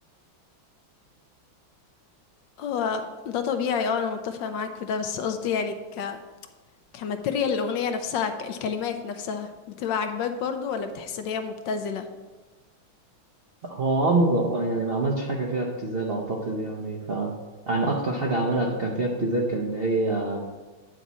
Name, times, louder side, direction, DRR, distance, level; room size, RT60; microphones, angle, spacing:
voice 1, 2.6-6.2 6.9-12.1 18.6-18.7, left 6 dB, 75° left, 7 dB, 1.3 m, -29 dB
voice 2, 13.6-17.3 17.7-20.4, right 2 dB, 55° right, -2 dB, 0.6 m, -25 dB
9.2 x 4.1 x 6.1 m, 1.2 s
omnidirectional pair, 2.2 m